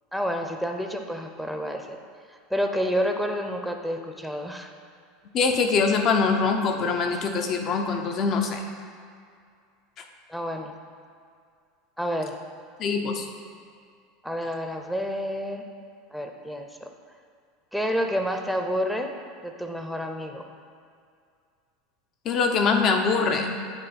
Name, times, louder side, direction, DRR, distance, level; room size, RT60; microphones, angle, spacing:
voice 1, 0.1-2.0 2.3-4.7 10.3-10.7 12.0-12.4 14.2-15.7 16.1-16.9 17.7-19.1 19.4-20.5, equal, ahead, 3 dB, 0.7 m, -29 dB
voice 2, 5.3-8.6 10.0-10.1 12.8-13.3 22.2-23.6, left 4 dB, 40° left, 4 dB, 0.7 m, -23 dB
9.0 x 3.4 x 4.1 m, 2.3 s
figure-of-eight pair, 80°, 0 cm